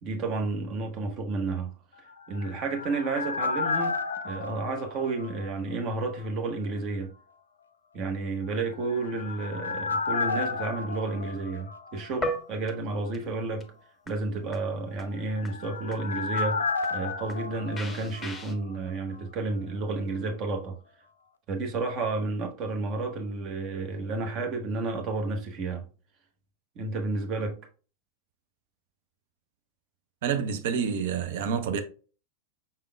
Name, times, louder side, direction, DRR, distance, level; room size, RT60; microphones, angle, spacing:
voice 1, 0.0-1.7 2.3-4.0 4.2-7.1 7.9-13.7 14.1-20.8 21.5-25.9 26.7-27.6, right 3 dB, 35° right, 1.0 m, -31 dB
sound 1, 2.1-5.9 6.2-6.3 8.7-12.4 12.7-12.8 15.0-18.9 19.1-19.2, left 4 dB, 70° left, 0.4 m, -33 dB
sound 2, 11.9-12.4 12.7-12.8 13.1-13.2 13.6-13.7 14.1-14.2 14.5-14.6 15.0-15.1 15.4-15.5 15.9-16.0 16.4-16.5 16.8-16.9 17.3-17.4 17.8-18.5, equal, 10° left, 0.9 m, -33 dB
voice 2, 30.2-31.8, right 7 dB, 55° right, 0.5 m, -28 dB
5.6 x 3.5 x 2.2 m
figure-of-eight pair, 90°, 0 cm